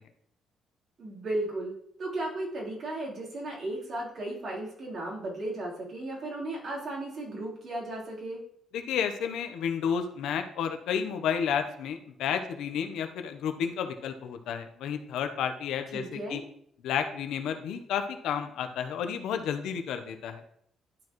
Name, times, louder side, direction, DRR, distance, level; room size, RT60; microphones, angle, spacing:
voice 1, 1.0-8.4 15.9-16.4, right 1 dB, 55° right, -5 dB, 3.5 m, -35 dB
voice 2, 8.7-16.4 16.8-20.4, left 7 dB, 85° left, 7 dB, 0.8 m, -31 dB
11.5 x 4.7 x 3.0 m, 0.68 s
cardioid pair, 90°, 0 cm